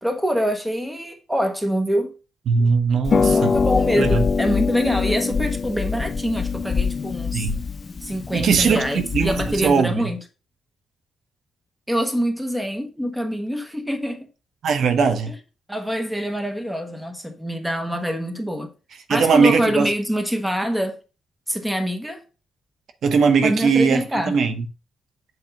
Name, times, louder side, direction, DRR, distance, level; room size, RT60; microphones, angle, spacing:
voice 1, 0.0-2.1 3.2-7.5 8.0-10.2 11.9-14.3 15.7-18.7 19.1-21.0 21.5-22.2 23.4-24.3, equal, 5° right, 1.2 m, -25 dB
voice 2, 2.5-3.6 4.0-4.3 7.3-7.6 8.3-10.1 14.6-15.3 19.1-19.9 23.0-24.7, right 5 dB, 70° right, 0.8 m, -20 dB
Harp, 3.0-9.8, left 5 dB, 35° left, 0.4 m, -23 dB
7.8 x 2.7 x 5.6 m
wide cardioid pair, 135°, 0 cm